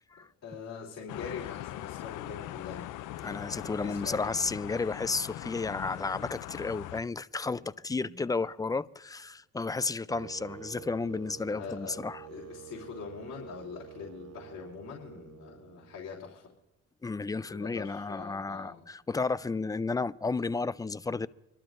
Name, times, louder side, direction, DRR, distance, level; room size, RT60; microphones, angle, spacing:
voice 1, 0.4-2.9 3.8-4.3 8.0-8.3 11.4-12.0 12.3-16.5 17.5-18.8, left 6 dB, 60° left, 3.2 m, -43 dB
sound 1, 1.1-7.0, left 15 dB, 90° left, 0.5 m, -41 dB
voice 2, 3.2-12.3 17.0-21.3, left 4 dB, 15° left, 0.4 m, -32 dB
sound 2, 10.1-16.2, right 15 dB, 55° right, 0.7 m, -48 dB
26.0 x 12.5 x 2.5 m
cardioid pair, 90°, 30 cm